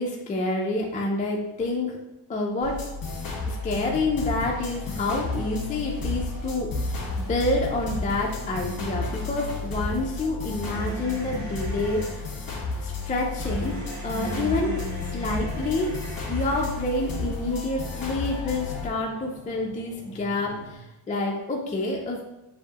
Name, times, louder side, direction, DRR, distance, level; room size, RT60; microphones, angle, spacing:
voice 1, 0.0-2.0 2.3-2.9 3.5-6.9 7.3-12.3 12.8-15.9 16.3-22.2, left 2 dB, 20° left, -1 dB, 0.4 m, -28 dB
sound 1, 2.6-18.9, left 3 dB, 45° left, 1.4 m, -32 dB
sound 2, 10.7-12.2 13.3-16.8 17.8-20.8, right 3 dB, 35° right, 1.2 m, -39 dB
6.9 x 2.7 x 2.8 m, 0.94 s
cardioid pair, 150°, 46 cm